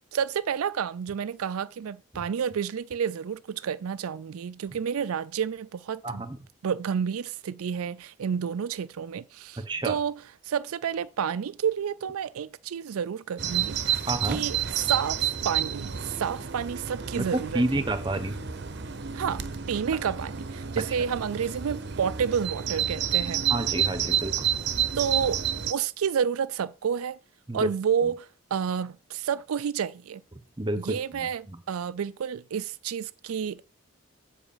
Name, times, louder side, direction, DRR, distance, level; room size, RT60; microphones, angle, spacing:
voice 1, 0.1-6.2 6.6-10.2 10.4-13.8 14.2-17.6 19.1-23.4 25.0-25.4 25.7-27.2 27.5-30.2 30.8-33.6, right 7 dB, 90° right, 0.4 m, -30 dB
voice 2, 6.0-6.4 9.6-10.0 14.1-14.4 17.2-18.3 23.5-24.5 27.5-27.7 28.0-28.1 30.6-31.6, right 1 dB, 20° right, 1.0 m, -30 dB
Bird vocalization bird call bird song, 13.4-25.7, right 9 dB, 55° right, 0.8 m, -30 dB
8.0 x 5.0 x 7.2 m
head